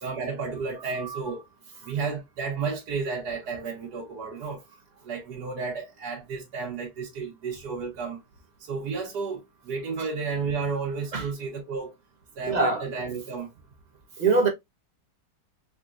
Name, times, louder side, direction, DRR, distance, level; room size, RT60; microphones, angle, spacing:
voice 1, 0.0-1.4 1.8-4.6 5.0-8.2 8.6-11.9 12.4-13.5, right 5 dB, 70° right, 1.5 m, -32 dB
voice 2, 12.5-12.8 14.2-14.5, right 4 dB, 40° right, 0.6 m, -22 dB
3.8 x 3.5 x 2.4 m
omnidirectional pair, 1.9 m